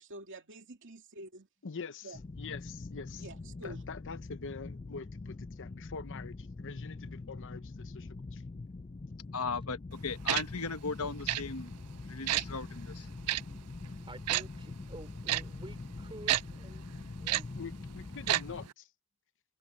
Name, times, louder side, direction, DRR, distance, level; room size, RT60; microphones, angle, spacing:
voice 1, 0.0-1.5 2.0-2.2 3.2-3.8, right 2 dB, 60° right, 2.6 m, -47 dB
voice 2, 1.6-3.3 3.6-8.4 17.6-18.9, left 5 dB, 60° left, 0.8 m, -45 dB
sound 1, 2.1-18.7, left 3 dB, 30° left, 0.4 m, -44 dB
voice 3, 9.3-11.8 12.1-13.4, left 4 dB, 75° left, 1.3 m, -37 dB
Tick-tock, 10.3-10.4 11.3-11.4 12.3-12.4 13.3-13.4 14.3-14.4 15.3-15.4 16.3-16.4 17.3-17.4 18.3-18.4 18.7-18.8, right 14 dB, 85° right, 0.4 m, -28 dB
voice 4, 13.8-16.9 17.2-17.5, right 2 dB, 25° right, 3.0 m, -50 dB
head